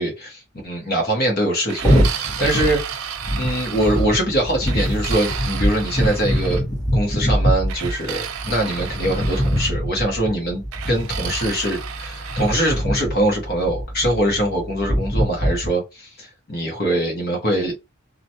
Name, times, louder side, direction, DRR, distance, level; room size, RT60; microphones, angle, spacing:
voice 1, 0.0-3.1 3.4-6.6 6.9-17.8, right 1 dB, 45° left, 0.9 m, -23 dB
sound 1, 1.7-4.2 4.7-6.6 7.7-9.7 10.7-12.8, right 8 dB, 70° right, 0.4 m, -32 dB
sound 2, 1.8-15.7, equal, 20° left, 1.1 m, -23 dB
2.4 x 2.1 x 2.8 m
head